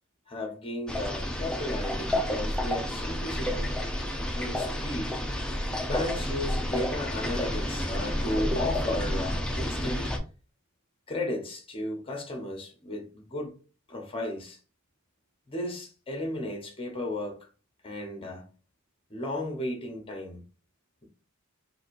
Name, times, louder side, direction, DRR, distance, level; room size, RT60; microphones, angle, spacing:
voice 1, 0.3-3.7 4.3-5.2 5.8-10.1 11.1-13.6 13.9-14.6 15.5-17.5 17.8-18.4 19.1-20.4, left 1 dB, 25° left, 1.1 m, -34 dB
sound 1, 0.9-10.2, equal, 5° left, 0.6 m, -30 dB
3.9 x 2.5 x 4.7 m
head